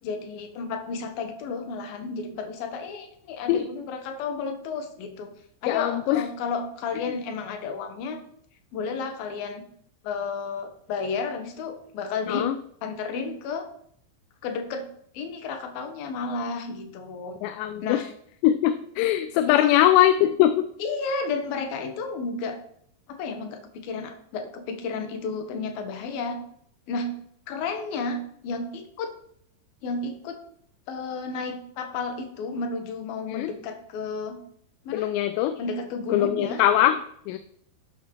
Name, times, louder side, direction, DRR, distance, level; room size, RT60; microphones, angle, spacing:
voice 1, 0.0-5.3 5.6-8.2 8.7-9.7 10.0-12.5 12.8-13.7 14.4-14.9 15.1-17.4 17.8-18.1 19.5-19.8 20.8-22.6 23.1-26.4 26.9-27.2 27.5-29.1 29.8-30.4 30.9-34.4 34.8-35.1 35.6-36.6, left 4 dB, 70° left, 6 dB, 2.6 m, -32 dB
voice 2, 5.7-6.2 12.3-12.5 17.4-18.0 18.4-20.7 33.4-33.5 34.9-35.5 36.1-36.9 37.3-37.4, left 12 dB, 85° left, 9 dB, 2.8 m, -21 dB
12.0 x 6.2 x 4.4 m, 0.65 s
omnidirectional pair, 5.0 m